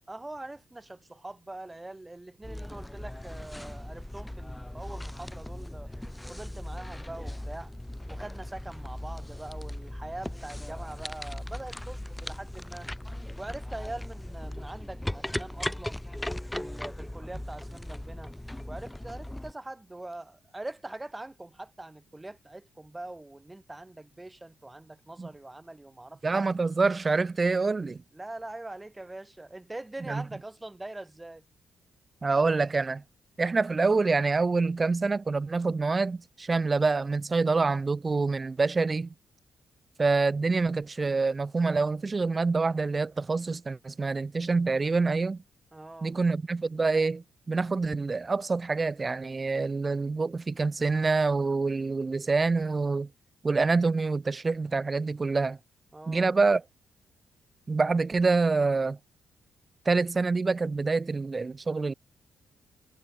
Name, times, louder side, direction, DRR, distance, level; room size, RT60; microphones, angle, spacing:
voice 1, 0.1-5.9 6.3-7.7 8.1-12.9 13.4-16.0 16.6-18.3 18.7-26.4 28.1-31.4 45.7-46.1 55.9-56.3, right 2 dB, 20° right, 6.9 m, -43 dB
sound 1, 2.4-19.5, left 1 dB, 10° left, 0.8 m, -38 dB
voice 2, 26.2-28.0 30.1-30.2 32.2-33.0 33.4-39.1 40.0-45.4 46.0-53.1 53.4-55.6 56.1-56.6 57.7-59.0 59.9-61.9, right 4 dB, 35° right, 2.5 m, -26 dB
supercardioid pair, 55°, 0 cm